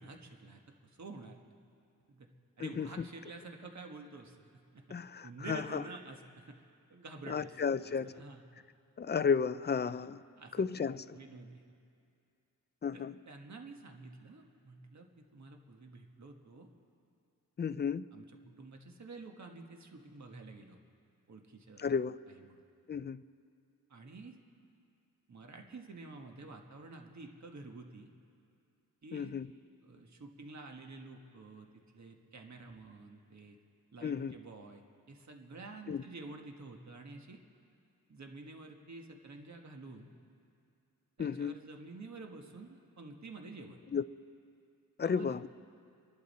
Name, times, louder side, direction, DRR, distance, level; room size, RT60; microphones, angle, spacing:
voice 1, 0.0-1.4 2.1-2.3 2.6-4.9 5.2-6.6 6.9-8.6 10.4-11.6 12.9-16.7 18.1-20.8 21.3-21.9 22.3-22.6 23.9-24.4 25.3-28.1 29.0-29.4 29.8-31.7 31.9-33.6 33.9-37.4 38.1-40.1 41.2-43.8 45.0-45.4, right 3 dB, 50° right, 3 dB, 1.4 m, -49 dB
voice 2, 2.6-3.1 4.9-5.8 7.3-8.1 9.0-10.2 10.6-11.2 12.8-13.2 17.6-18.1 21.8-22.2 22.9-23.2 29.1-29.5 34.0-34.3 35.9-36.0 41.2-41.5 43.9-44.0 45.0-45.5, left 6 dB, 30° left, 15 dB, 0.4 m, -33 dB
28.0 x 11.5 x 4.2 m, 2.5 s
wide cardioid pair, 105°, 36 cm